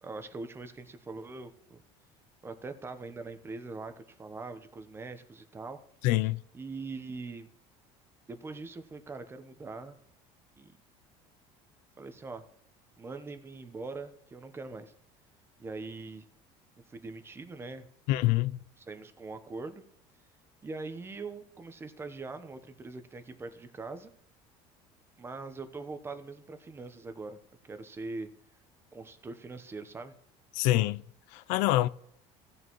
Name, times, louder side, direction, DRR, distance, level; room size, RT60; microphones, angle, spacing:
voice 1, 0.0-1.8 2.4-5.8 6.5-7.5 8.3-10.0 10.6-10.8 12.0-12.4 13.0-14.9 15.6-16.3 16.8-17.9 18.8-19.8 20.6-24.1 25.2-28.3 28.9-30.2, right 3 dB, 20° right, 0.8 m, -42 dB
voice 2, 6.0-6.4 18.1-18.6 30.5-31.0 31.3-31.9, left 17 dB, 80° left, 0.4 m, -26 dB
16.0 x 6.9 x 3.0 m
cardioid pair, 135°, 13 cm